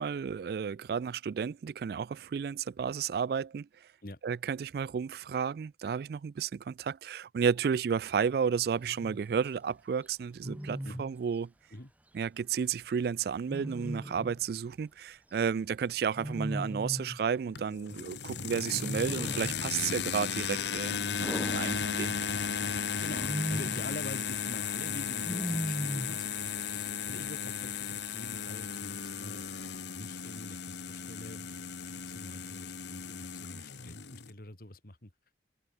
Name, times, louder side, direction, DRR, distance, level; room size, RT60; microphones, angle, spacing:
voice 1, 0.0-3.7 4.2-11.5 12.1-22.1, right 6 dB, 60° right, 0.3 m, -32 dB
Wild animals, 8.8-9.2 10.4-11.1 13.5-14.4 16.1-17.2 18.7-19.7 21.2-22.3 23.1-23.9 25.2-26.2, equal, 10° right, 0.8 m, -37 dB
sound 1, 17.6-34.3, left 6 dB, 80° left, 1.4 m, -35 dB
voice 2, 23.0-29.4 29.9-31.5 31.9-35.1, left 1 dB, 55° left, 2.7 m, -46 dB
head